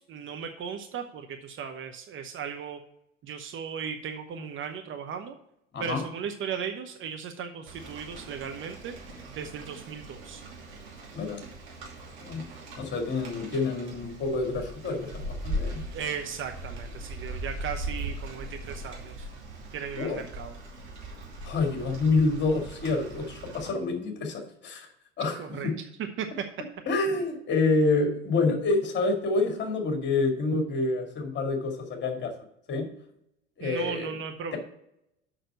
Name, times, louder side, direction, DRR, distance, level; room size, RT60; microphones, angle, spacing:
voice 1, 0.0-2.8 3.2-5.4 5.8-8.9 9.4-10.4 15.9-19.3 19.7-20.6 25.4-25.7 26.2-26.3 33.6-34.6, right 7 dB, 35° right, 6 dB, 0.9 m, -36 dB
Rain, 7.7-23.7, right 1 dB, 60° right, 2.7 m, -40 dB
voice 2, 12.8-15.8 19.9-20.2 21.4-24.9 25.2-25.7 26.9-32.3 32.7-32.9 33.6-34.1, left 3 dB, 30° left, 3 dB, 2.3 m, -27 dB
6.5 x 5.9 x 6.8 m, 0.77 s
figure-of-eight pair, 75°, 36 cm